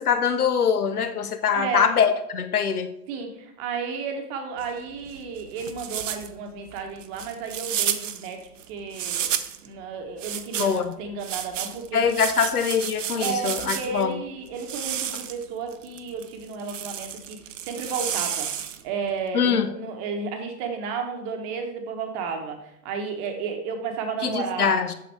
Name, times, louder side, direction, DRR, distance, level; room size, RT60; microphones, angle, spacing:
voice 1, 0.0-2.9 10.6-10.9 11.9-14.2 19.3-19.7 24.2-24.9, left 7 dB, 65° left, 10 dB, 0.9 m, -23 dB
voice 2, 1.5-1.9 3.1-8.4 8.7-9.3 9.6-12.0 13.2-17.4 17.7-18.5 18.8-22.6 22.8-24.8, right 5 dB, 30° right, 4 dB, 1.1 m, -32 dB
sound 1, 4.6-9.7 10.2-14.1 14.5-19.0, right 10 dB, 50° right, 0.7 m, -32 dB
7.7 x 6.8 x 3.3 m, 0.79 s
figure-of-eight pair, 105°, 48 cm